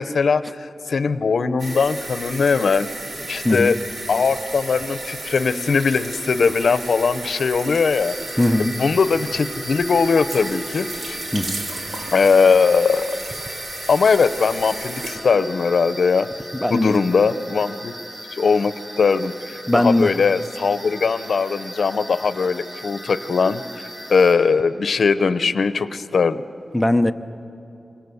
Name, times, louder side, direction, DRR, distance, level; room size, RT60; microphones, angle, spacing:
voice 1, 0.0-2.9 3.3-3.8 4.1-8.1 8.6-11.2 12.1-13.2 13.9-16.3 16.7-17.9 18.3-26.4, left 5 dB, 65° left, 13 dB, 0.8 m, -20 dB
sound 1, 1.6-15.2, right 2 dB, 65° right, 3.6 m, -33 dB
sound 2, 7.9-24.3, right 1 dB, 25° right, 6.2 m, -38 dB
voice 2, 8.4-8.7 11.3-11.6 16.6-17.0 19.7-20.1 26.7-27.1, left 1 dB, 5° left, 8 dB, 0.7 m, -19 dB
26.5 x 24.5 x 7.1 m, 2.7 s
wide cardioid pair, 175°, 0 cm